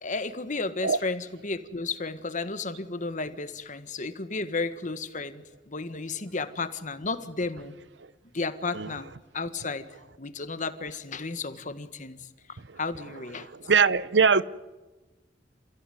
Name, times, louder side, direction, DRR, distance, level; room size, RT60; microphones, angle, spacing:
voice 1, 0.0-7.7 8.3-9.1 9.3-9.9 10.2-12.2 12.8-13.5, left 3 dB, 45° left, 1.6 m, -33 dB
voice 2, 13.7-14.4, right 5 dB, 75° right, 0.9 m, -20 dB
29.0 x 15.5 x 9.4 m
head